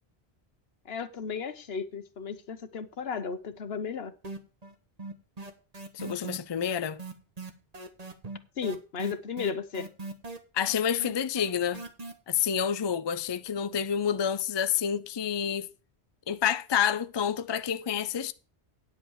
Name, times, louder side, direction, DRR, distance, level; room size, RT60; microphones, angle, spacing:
voice 1, 0.8-4.1 8.6-9.9, left 6 dB, 70° left, 1.2 m, -34 dB
sound 1, 4.2-4.7 5.0-12.1, right 3 dB, 40° right, 1.3 m, -40 dB
voice 2, 5.9-7.0 10.5-11.8 12.3-15.7 16.3-18.3, left 8 dB, 40° left, 0.4 m, -28 dB
9.8 x 7.9 x 4.7 m
omnidirectional pair, 1.1 m